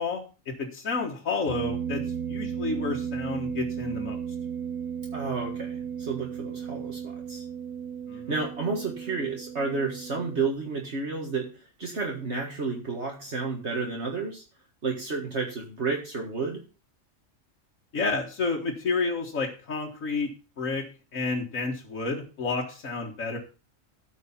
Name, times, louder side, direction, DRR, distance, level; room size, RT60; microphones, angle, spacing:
voice 1, 0.0-2.0 2.3-4.2 8.1-8.4 17.9-20.3 20.6-20.8 21.1-23.4, left 4 dB, 75° left, -1 dB, 2.0 m, -30 dB
sound 1, 1.5-10.5, right 8 dB, 75° right, 1.4 m, -35 dB
voice 2, 5.1-7.5 8.3-14.4 14.8-16.6, right 4 dB, 55° right, 0 dB, 2.1 m, -31 dB
14.0 x 5.5 x 5.7 m, 0.33 s
omnidirectional pair, 1.4 m